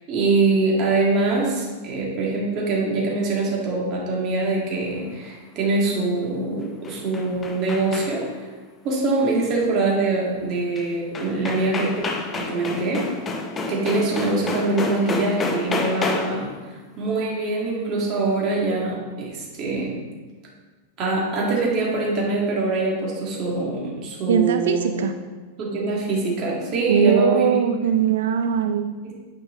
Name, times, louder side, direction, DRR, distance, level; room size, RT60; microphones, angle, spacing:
voice 1, 0.0-8.3 8.8-12.0 12.3-13.0 13.7-16.5 17.0-20.0 21.0-25.1 25.6-27.5 29.0-29.1, right 3 dB, 30° right, -3 dB, 1.8 m, -23 dB
sound 1, 6.6-8.4 10.8-10.9 11.1-16.5, left 3 dB, 15° left, 0.6 m, -29 dB
voice 2, 24.3-25.1 26.9-28.9, right 8 dB, 90° right, 8 dB, 0.4 m, -20 dB
9.1 x 4.8 x 3.6 m, 1.3 s
supercardioid pair, 165°, 0 cm